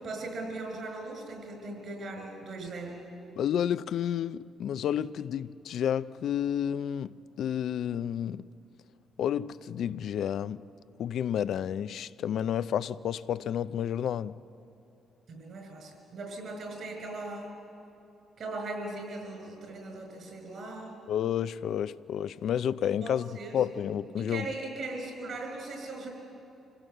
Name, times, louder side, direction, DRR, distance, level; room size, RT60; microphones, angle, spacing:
voice 1, 0.0-3.0 15.3-17.5 18.4-21.0 23.0-23.5 24.2-26.1, right 2 dB, 60° right, 6.2 m, -39 dB
voice 2, 3.4-8.5 9.2-10.6 11.0-14.3 21.1-24.5, left 9 dB, 70° left, 0.5 m, -30 dB
26.0 x 17.0 x 8.0 m
cardioid pair, 90°, 0 cm